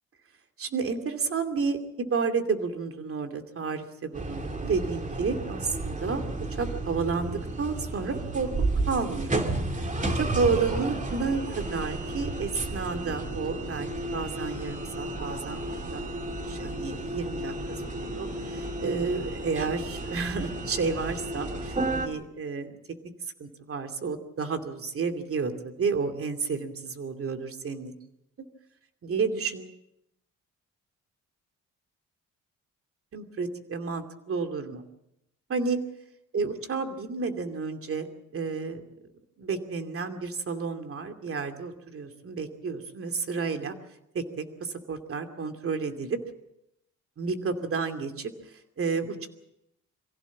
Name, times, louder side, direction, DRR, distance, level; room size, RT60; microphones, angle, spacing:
voice 1, 0.6-6.2 6.6-9.4 9.8-15.6 15.9-16.0 16.5-22.8 23.4-27.9 29.0-29.7 33.1-34.8 35.5-35.8 36.3-38.1 38.3-38.8 39.4-43.7 44.1-46.2 47.2-49.3, right 4 dB, 45° right, 6 dB, 2.7 m, -31 dB
sound 1, 4.1-22.1, right 2 dB, 25° right, 2.4 m, -32 dB
24.0 x 16.0 x 7.4 m, 0.82 s
cardioid pair, 90°, 30 cm